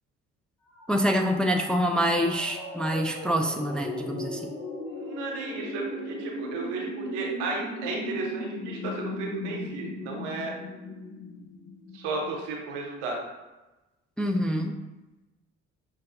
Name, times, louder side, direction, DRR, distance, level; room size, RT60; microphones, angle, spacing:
sound 1, 0.7-12.5, left 2 dB, 70° left, 0.9 m, -38 dB
voice 1, 0.9-4.5 14.2-14.8, equal, 5° left, 3 dB, 0.3 m, -26 dB
voice 2, 4.8-10.5 11.9-13.2, right 4 dB, 85° right, -1 dB, 0.8 m, -34 dB
5.6 x 2.3 x 2.4 m, 1.1 s
hypercardioid pair, 45°, 36 cm